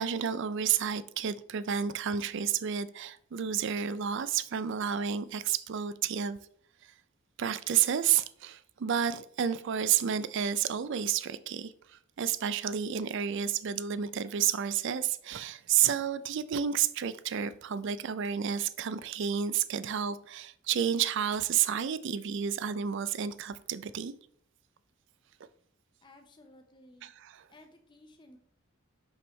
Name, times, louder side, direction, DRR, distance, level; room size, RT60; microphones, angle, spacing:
voice 1, 0.0-6.4 7.4-11.7 12.2-24.1 27.0-27.4, right 8 dB, 60° right, 0.4 m, -30 dB
voice 2, 26.0-27.1 27.5-28.4, left 1 dB, 25° left, 0.7 m, -56 dB
6.2 x 5.6 x 3.1 m
head